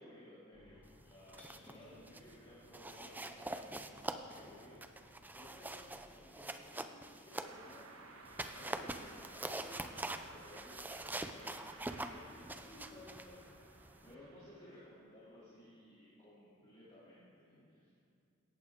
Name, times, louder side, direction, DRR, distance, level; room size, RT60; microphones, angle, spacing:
voice 1, 0.0-5.1 5.3-7.9 8.5-13.7 14.0-18.1, left 1 dB, 25° left, -10 dB, 2.8 m, -57 dB
sound 1, 0.5-5.9, left 1 dB, 5° left, 3.1 m, -64 dB
sound 2, 1.1-1.8 2.1-2.3 2.7-7.8 8.2-14.1, right 2 dB, 10° right, 0.5 m, -45 dB
sound 3, 7.4-15.0, right 3 dB, 85° right, 1.4 m, -57 dB
17.0 x 13.5 x 3.6 m, 2.5 s
head